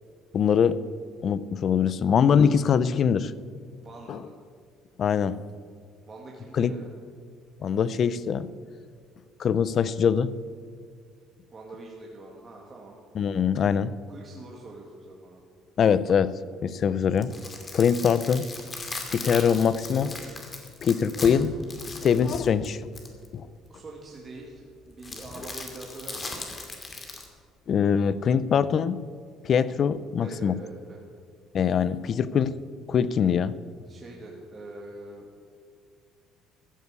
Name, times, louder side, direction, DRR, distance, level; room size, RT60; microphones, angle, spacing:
voice 1, 0.3-0.8 1.2-3.3 4.1-4.2 5.0-5.4 6.5-6.7 7.6-8.5 9.4-10.3 13.1-13.9 15.8-16.3 16.6-17.3 17.7-18.5 19.1-20.1 20.8-21.5 21.9-22.8 23.3-23.5 27.7-29.0 29.4-30.5 31.5-32.5 32.9-33.6, left 7 dB, 45° left, 17 dB, 0.6 m, -23 dB
voice 2, 3.8-4.3 6.1-6.9 11.5-13.0 14.1-15.4 23.7-26.3 30.2-31.0 33.9-35.3, right 2 dB, 30° right, -2 dB, 2.2 m, -44 dB
sound 1, 17.0-23.3 25.0-27.3, left 3 dB, 25° left, 2.6 m, -38 dB
15.0 x 9.4 x 8.3 m, 2.1 s
cardioid pair, 110°, 0 cm